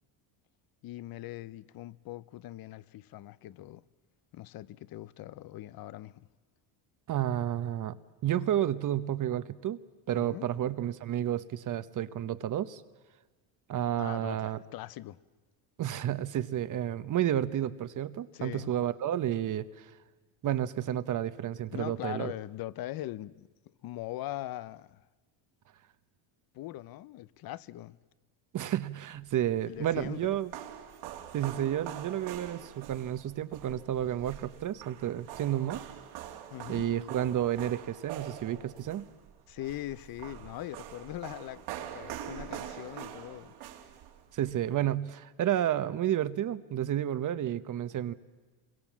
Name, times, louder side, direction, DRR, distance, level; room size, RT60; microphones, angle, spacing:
voice 1, 0.8-3.8 4.3-6.3 10.1-10.5 14.0-15.2 18.3-18.7 21.7-25.1 26.5-28.0 29.7-30.3 36.5-36.8 39.5-41.7 41.9-43.6, left 15 dB, 45° left, 0.7 m, -41 dB
voice 2, 7.1-8.0 8.2-9.8 10.1-12.8 13.7-14.6 15.8-19.9 20.4-22.3 28.5-30.5 31.3-35.8 36.7-39.0 44.3-48.1, right 11 dB, 40° right, 1.0 m, -31 dB
sound 1, 29.5-44.5, right 11 dB, 80° right, 3.0 m, -44 dB
27.5 x 22.5 x 7.4 m
cardioid pair, 125°, 48 cm